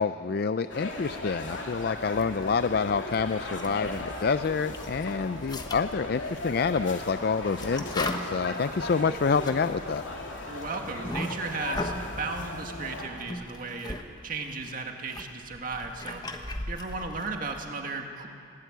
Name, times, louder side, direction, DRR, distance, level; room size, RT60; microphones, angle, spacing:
voice 1, 0.0-10.0, left 5 dB, 55° left, 12 dB, 0.4 m, -27 dB
sound 1, 0.7-13.0, left 2 dB, 80° left, 2.8 m, -37 dB
sound 2, 0.9-1.6 2.0-4.3 4.7-12.1 12.8-14.0 14.3-17.7, left 1 dB, 20° left, 1.1 m, -39 dB
voice 2, 10.5-14.0 14.2-16.2 16.7-18.3, right 3 dB, 45° right, 3 dB, 2.0 m, -35 dB
19.5 x 17.5 x 9.2 m, 2.5 s
head